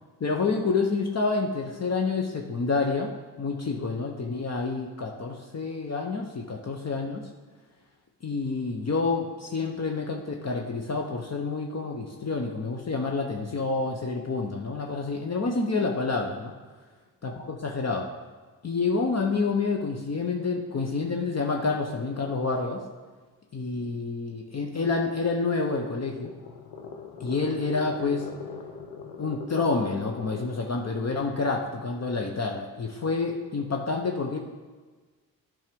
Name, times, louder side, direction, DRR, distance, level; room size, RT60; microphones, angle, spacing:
voice 1, 0.2-7.3 8.2-16.5 17.2-18.1 18.6-22.8 23.5-26.3 27.2-28.3 29.2-34.4, left 4 dB, 35° left, 1 dB, 1.0 m, -28 dB
sound 1, 25.9-30.6, left 5 dB, 65° left, 1.1 m, -41 dB
10.0 x 3.6 x 5.3 m, 1.4 s
hypercardioid pair, 45°, 43 cm